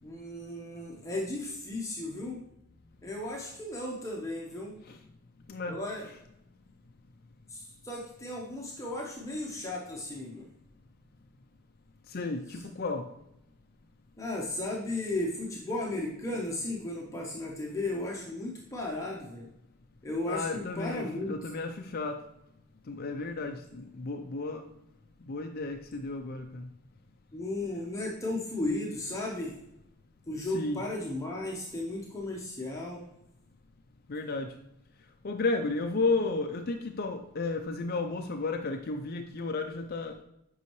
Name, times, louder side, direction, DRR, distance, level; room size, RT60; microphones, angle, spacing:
voice 1, 0.0-2.4 3.0-4.8 5.7-6.0 7.5-10.5 12.5-12.6 14.2-19.5 20.0-21.5 27.3-29.6 30.3-33.0, left 2 dB, 15° left, -2 dB, 0.9 m, -35 dB
voice 2, 12.1-13.1 20.3-22.2 22.9-24.7 25.2-26.7 30.5-30.8 34.1-34.5 35.2-40.2, left 3 dB, 45° left, 5 dB, 0.5 m, -33 dB
8.4 x 5.5 x 3.1 m, 0.81 s
head